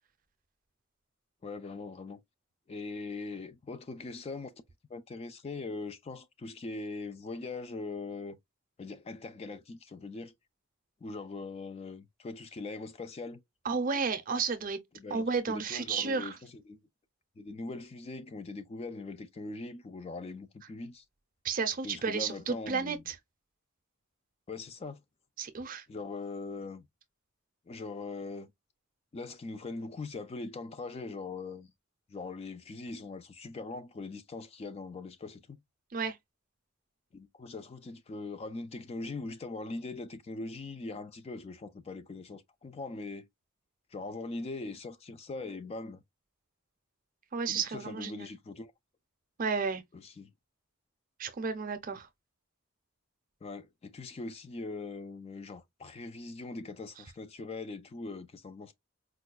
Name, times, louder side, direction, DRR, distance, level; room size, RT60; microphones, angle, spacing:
voice 1, 1.4-2.2 2.7-4.5 4.9-8.4 8.8-10.3 11.0-13.4 14.9-16.8 17.4-21.0 21.8-23.0 24.5-25.0 25.9-26.9 27.7-28.5 29.1-31.7 32.1-35.6 37.1-43.3 43.9-46.0 47.5-48.7 49.9-50.3 53.4-58.7, left 3 dB, 30° left, 0.3 m, -41 dB
voice 2, 13.6-14.8 15.1-16.4 21.4-23.2 25.4-25.8 35.9-36.2 47.3-48.3 49.4-49.8 51.2-52.1, right 5 dB, 40° right, 0.6 m, -32 dB
4.7 x 2.2 x 2.2 m
head